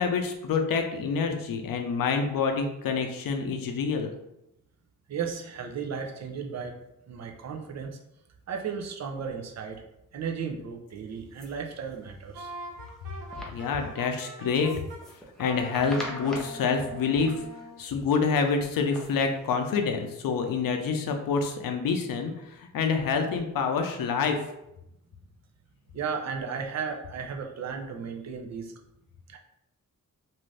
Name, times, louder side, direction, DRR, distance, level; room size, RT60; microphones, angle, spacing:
voice 1, 0.0-4.1 13.5-14.7 15.4-17.4 17.8-24.4, left 5 dB, 85° left, 5 dB, 0.5 m, -27 dB
voice 2, 5.1-6.8 7.1-8.0 8.5-9.8 10.1-12.5 25.9-28.7 29.3-29.4, right 6 dB, 55° right, 2 dB, 0.6 m, -35 dB
sound 1, 11.1-20.5, left 1 dB, ahead, 0.7 m, -46 dB
Wind instrument woodwind instrument, 12.3-15.0 15.4-17.8, equal, 90° right, 0.7 m, -42 dB
2.7 x 2.4 x 3.2 m, 0.85 s
cardioid pair, 85°, 33 cm